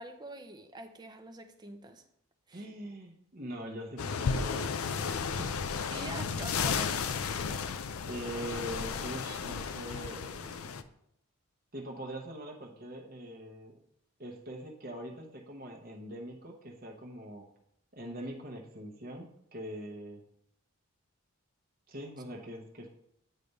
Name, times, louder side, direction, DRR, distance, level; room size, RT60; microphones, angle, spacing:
voice 1, 0.0-2.0 2.5-2.7 5.9-7.0, right 2 dB, 20° right, 5 dB, 0.6 m, -45 dB
voice 2, 2.5-5.6 8.0-10.8 11.7-13.8 14.2-17.5 17.9-20.2 21.9-22.9, right 1 dB, 40° right, 0 dB, 0.9 m, -43 dB
sound 1, 4.0-10.8, left 5 dB, 75° left, 0.5 m, -33 dB
9.1 x 3.3 x 5.4 m, 0.73 s
head